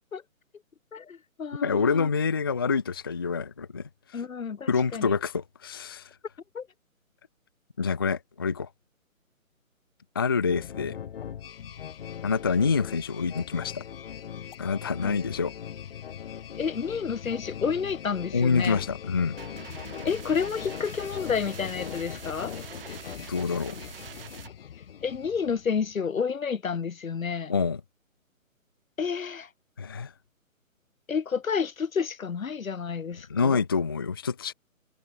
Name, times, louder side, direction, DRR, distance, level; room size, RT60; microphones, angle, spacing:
voice 1, 0.9-2.1 4.1-5.1 6.5-6.7 15.0-15.2 16.6-18.8 20.0-22.5 25.0-27.5 29.0-29.5 31.1-33.6, left 6 dB, 75° left, 2.1 m, -30 dB
voice 2, 1.6-4.2 4.7-6.1 7.8-8.7 10.1-11.0 12.2-13.8 14.6-15.5 18.3-19.4 23.3-23.8 27.5-27.8 29.8-30.1 33.3-34.5, left 5 dB, 15° left, 0.6 m, -27 dB
sound 1, 10.5-26.0, left 9 dB, 45° left, 2.6 m, -40 dB
sound 2, 19.4-24.5, right 9 dB, 40° right, 2.4 m, -45 dB
hypercardioid pair, 155°, 41 cm